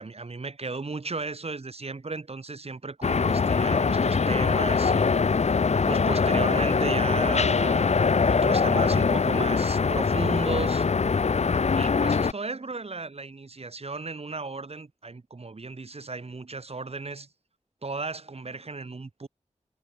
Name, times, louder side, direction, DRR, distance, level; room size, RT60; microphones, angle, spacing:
voice 1, 0.0-5.2 5.9-10.9 11.8-17.3 17.8-19.3, right 3 dB, 55° right, 4.1 m, -35 dB
sound 1, 3.0-12.3, left 5 dB, 60° left, 0.8 m, -23 dB
wide cardioid pair, 60°, 13 cm